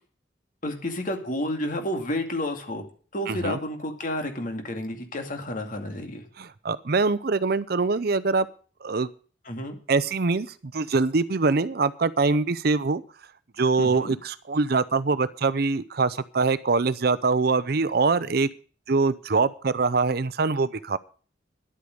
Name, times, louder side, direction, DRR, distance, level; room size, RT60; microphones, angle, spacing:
voice 1, 0.6-2.8 3.1-6.2 9.5-9.8 13.8-14.2, left 1 dB, 45° left, 5 dB, 2.4 m, -30 dB
voice 2, 3.3-3.6 6.4-8.5 8.8-9.1 9.9-10.5 10.7-13.0 13.6-18.5 18.9-21.0, right 4 dB, 55° right, 16 dB, 0.6 m, -23 dB
11.0 x 8.5 x 7.8 m, 0.41 s
head